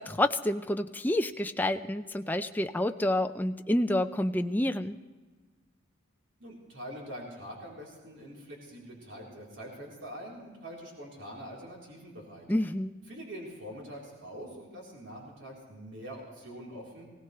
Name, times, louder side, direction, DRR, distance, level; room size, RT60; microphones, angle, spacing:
voice 1, 0.0-5.0 12.5-12.9, left 1 dB, 10° left, 7 dB, 0.5 m, -28 dB
voice 2, 6.4-12.5 13.1-17.0, equal, 65° right, -3 dB, 3.8 m, -44 dB
20.5 x 17.0 x 3.3 m, 1.3 s
head